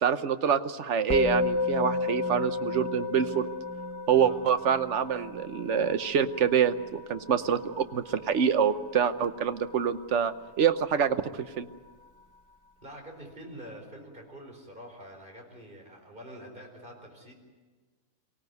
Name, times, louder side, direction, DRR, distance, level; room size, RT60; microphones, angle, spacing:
voice 1, 0.0-3.5 4.1-11.7, right 8 dB, 55° right, 11 dB, 1.1 m, -26 dB
Musical instrument, 1.1-10.6, left 3 dB, 10° right, 1.3 m, -33 dB
voice 2, 12.8-17.3, equal, 30° right, 2 dB, 4.6 m, -46 dB
24.0 x 17.0 x 9.4 m, 1.4 s
omnidirectional pair, 1.6 m